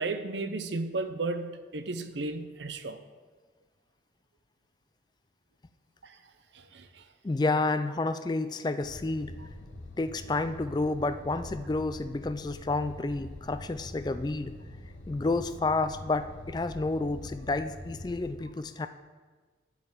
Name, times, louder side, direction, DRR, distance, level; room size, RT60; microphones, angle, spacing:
voice 1, 0.0-3.0 6.0-6.1 6.7-6.9, right 3 dB, 80° right, 9 dB, 0.7 m, -33 dB
voice 2, 7.2-9.4 10.0-14.6 15.1-18.9, left 3 dB, 25° left, 11 dB, 0.3 m, -30 dB
sound 1, 8.8-18.3, left 1 dB, 85° left, 1.5 m, -45 dB
11.0 x 5.0 x 7.3 m, 1.4 s
head